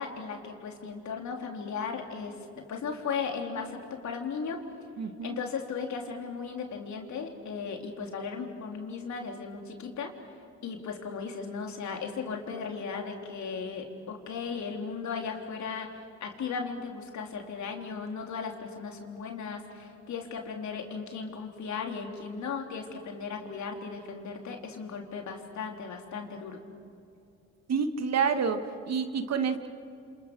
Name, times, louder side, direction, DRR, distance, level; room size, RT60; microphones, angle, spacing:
voice 1, 0.0-4.6 5.2-10.1 10.6-26.6, left 5 dB, 60° left, 2 dB, 3.7 m, -36 dB
voice 2, 5.0-5.4 27.7-29.7, right 6 dB, 55° right, 8 dB, 2.0 m, -28 dB
29.0 x 27.0 x 6.4 m, 2.6 s
supercardioid pair, 60°, 32 cm